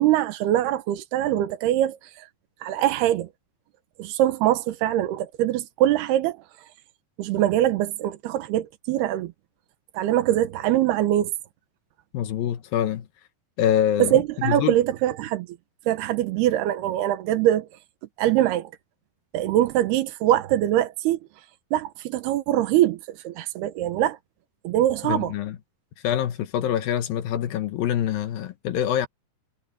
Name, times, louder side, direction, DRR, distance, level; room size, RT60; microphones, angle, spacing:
voice 1, 0.0-2.3 2.6-3.3 4.0-6.4 7.2-9.3 9.9-11.3 14.0-15.5 15.9-17.7 18.2-18.7 19.3-21.2 21.7-24.2 24.6-25.3, right 13 dB, 85° right, 3.2 m, -23 dB
voice 2, 12.1-13.1 13.6-14.1 14.4-14.8 25.0-25.6 26.0-29.1, left 10 dB, 75° left, 2.7 m, -25 dB
omnidirectional pair, 4.5 m